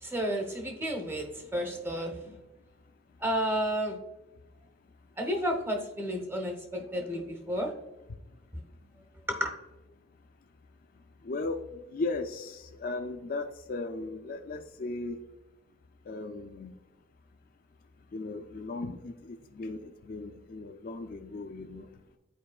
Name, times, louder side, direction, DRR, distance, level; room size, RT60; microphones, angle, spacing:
voice 1, 0.0-2.2 3.2-4.0 5.2-7.7 9.3-9.5, equal, 10° right, 3 dB, 0.9 m, -31 dB
voice 2, 11.2-11.6 11.9-15.2 16.1-16.7 18.1-21.9, left 3 dB, 45° left, 5 dB, 0.4 m, -37 dB
11.0 x 4.6 x 2.3 m, 1.0 s
head